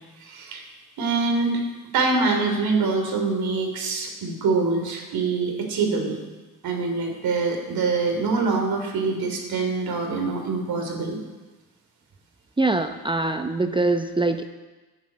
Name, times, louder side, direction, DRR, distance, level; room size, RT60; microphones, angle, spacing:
voice 1, 0.2-0.6 1.0-1.6 1.9-6.2 6.6-11.2, right 4 dB, 80° right, 2 dB, 3.2 m, -24 dB
voice 2, 12.6-14.5, right 2 dB, 15° right, 7 dB, 0.7 m, -23 dB
12.5 x 7.9 x 8.6 m, 1.2 s
cardioid pair, 120°, 35 cm